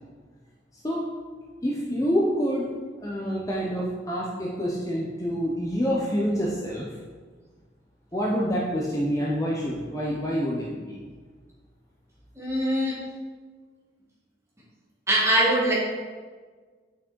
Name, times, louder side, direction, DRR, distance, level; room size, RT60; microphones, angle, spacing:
voice 1, 1.6-2.7 3.0-6.9 8.1-11.0, equal, 20° left, -4 dB, 1.0 m, -27 dB
voice 2, 12.4-13.0 15.1-15.7, right 1 dB, 15° right, -5 dB, 2.3 m, -22 dB
9.0 x 6.3 x 4.7 m, 1.4 s
head